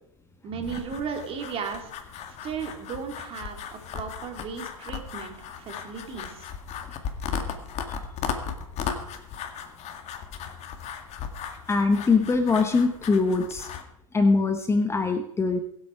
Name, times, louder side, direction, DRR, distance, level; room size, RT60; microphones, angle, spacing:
voice 1, 0.4-1.9 2.4-6.5, right 6 dB, 35° right, 4 dB, 3.1 m, -35 dB
sound 1, 0.6-13.8, left 7 dB, 40° left, 2.0 m, -36 dB
voice 2, 11.7-13.7 14.1-15.6, left 4 dB, 15° left, 6 dB, 1.2 m, -22 dB
23.0 x 8.2 x 4.7 m, 0.73 s
hypercardioid pair, 100°, 17 cm